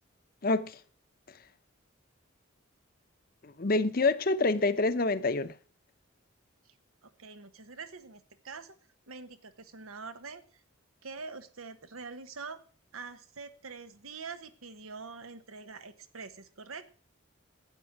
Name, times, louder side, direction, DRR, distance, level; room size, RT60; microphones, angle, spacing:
voice 1, 0.4-0.8 3.4-5.5, left 3 dB, 45° left, 0.8 m, -27 dB
voice 2, 7.0-8.7 9.1-10.6 11.0-12.6 12.9-16.9, right 4 dB, 90° right, 1.2 m, -45 dB
12.0 x 9.0 x 6.1 m
head